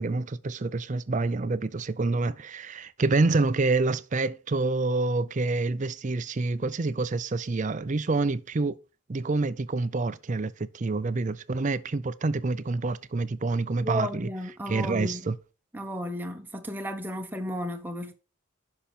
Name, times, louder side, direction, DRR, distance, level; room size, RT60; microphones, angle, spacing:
voice 1, 0.0-8.8 9.1-14.3 14.7-15.4, right 3 dB, 35° right, 0.5 m, -27 dB
voice 2, 13.8-15.2 15.7-18.1, equal, 10° right, 0.9 m, -33 dB
10.5 x 5.7 x 4.2 m
head